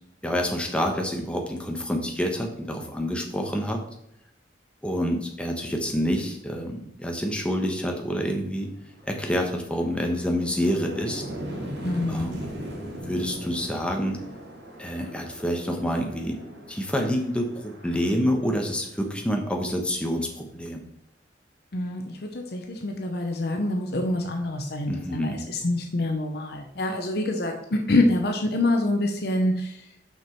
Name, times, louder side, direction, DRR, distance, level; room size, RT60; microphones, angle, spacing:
voice 1, 0.2-3.8 4.8-8.7 9.1-11.2 12.1-12.4 13.0-14.2 14.8-16.4 16.7-20.8 24.9-25.4, equal, 5° left, 2 dB, 1.0 m, -27 dB
sound 1, 8.0-8.1 8.5-19.3, equal, 70° right, 2.4 m, -40 dB
voice 2, 11.8-12.3 21.7-29.9, left 2 dB, 60° left, 3 dB, 0.8 m, -26 dB
5.9 x 5.8 x 4.5 m, 0.77 s
head